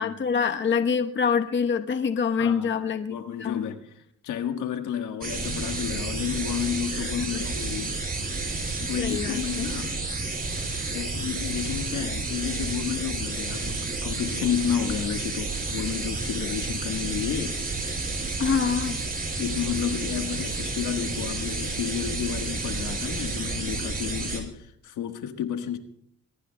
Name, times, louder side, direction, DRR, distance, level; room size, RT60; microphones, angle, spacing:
voice 1, 0.0-3.6 7.0-7.4 8.8-9.4 18.4-19.0, left 6 dB, 40° left, 1.1 m, -26 dB
voice 2, 2.4-2.7 3.1-8.0 8.9-10.0 10.9-17.9 19.4-25.8, left 9 dB, 85° left, 1.5 m, -31 dB
sound 1, 5.2-24.4, right 3 dB, 30° right, 5.1 m, -31 dB
22.5 x 21.5 x 2.3 m
cardioid pair, 90°, 30 cm